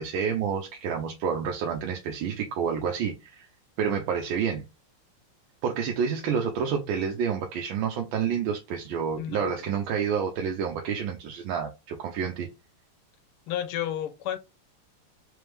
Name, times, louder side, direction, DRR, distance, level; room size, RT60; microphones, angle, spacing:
voice 1, 0.0-3.5 3.8-4.7 5.6-12.5, right 7 dB, 75° right, 1.3 m, -29 dB
voice 2, 9.2-9.6 13.5-14.4, left 10 dB, 90° left, 1.6 m, -31 dB
3.4 x 3.2 x 3.3 m
omnidirectional pair, 2.4 m